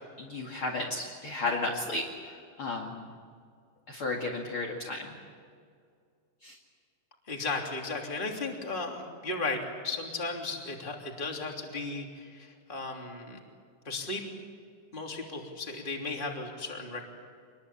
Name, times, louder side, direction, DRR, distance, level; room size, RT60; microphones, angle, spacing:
voice 1, 0.2-3.1 3.9-5.2 6.4-6.6, left 2 dB, 40° left, -1 dB, 2.8 m, -34 dB
voice 2, 7.3-13.4 13.8-14.2 14.9-17.0, left 3 dB, 15° left, 1 dB, 2.9 m, -35 dB
26.0 x 21.5 x 8.6 m, 2.2 s
omnidirectional pair, 3.9 m